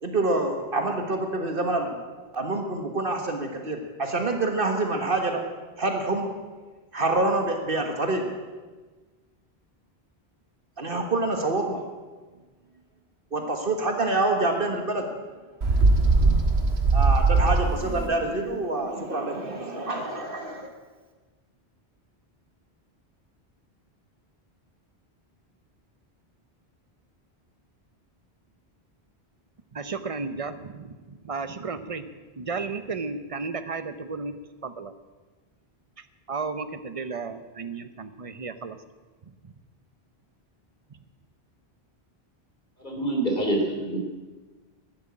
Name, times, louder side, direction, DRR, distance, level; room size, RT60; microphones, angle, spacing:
voice 1, 0.0-2.0 2.3-5.4 5.8-6.3 6.9-8.3 10.8-11.8 13.3-15.0 16.9-20.7, right 2 dB, 60° right, 4 dB, 1.8 m, -26 dB
Bird, 15.6-18.1, right 3 dB, 75° right, 1.7 m, -20 dB
voice 2, 29.7-32.1 32.4-34.3 34.6-34.9 36.3-38.8, right 4 dB, 35° right, 11 dB, 0.9 m, -33 dB
voice 3, 42.8-44.0, right 1 dB, 45° left, 1 dB, 3.3 m, -26 dB
12.5 x 11.0 x 8.7 m, 1.3 s
omnidirectional pair, 1.1 m